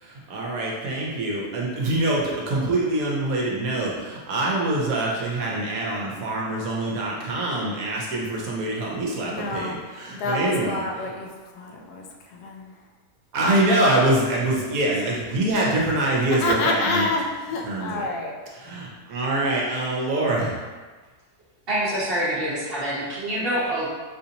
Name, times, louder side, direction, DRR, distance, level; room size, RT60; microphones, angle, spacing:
voice 1, 0.0-11.1 13.3-17.1 17.6-18.1 18.5-20.6, right 1 dB, 65° right, -3 dB, 1.1 m, -25 dB
voice 2, 9.3-9.8 10.2-12.0 12.3-12.7 16.4-18.3, left 2 dB, 80° left, 1 dB, 1.1 m, -28 dB
voice 3, 21.7-23.9, right 1 dB, 45° right, -8 dB, 0.9 m, -26 dB
4.2 x 2.7 x 2.7 m, 1.4 s
omnidirectional pair, 1.7 m